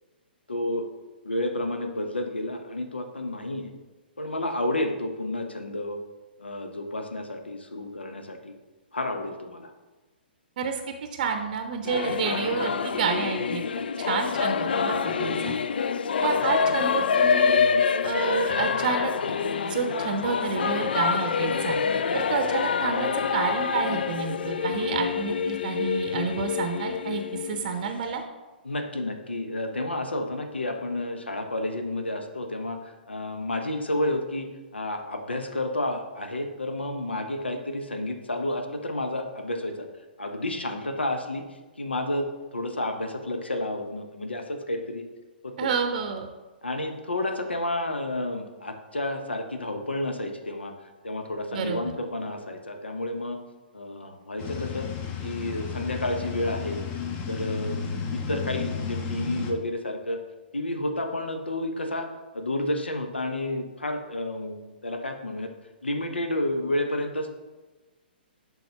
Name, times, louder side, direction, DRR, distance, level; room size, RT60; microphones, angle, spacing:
voice 1, 0.5-0.9 1.2-3.7 4.2-6.0 6.4-8.5 8.9-9.7 15.2-15.5 22.1-22.2 28.6-39.9 40.2-41.4 41.8-45.0 45.4-45.7 46.6-50.7 51.0-53.4 53.7-54.9 55.2-56.8 57.3-57.8 58.1-60.2 60.5-62.1 62.3-65.5 65.8-67.3, left 1 dB, 85° left, 6 dB, 0.9 m, -30 dB
voice 2, 10.6-13.6 14.1-15.5 16.2-17.6 18.0-19.3 19.6-21.8 22.1-28.2 45.6-46.3 51.5-51.8, right 6 dB, 50° right, 5 dB, 0.7 m, -29 dB
Singing / Musical instrument, 11.8-28.2, left 6 dB, 65° left, 0.3 m, -26 dB
sound 1, 54.4-59.5, left 6 dB, 30° left, 0.9 m, -32 dB
11.0 x 4.1 x 2.9 m, 1.2 s
figure-of-eight pair, 120°, 6 cm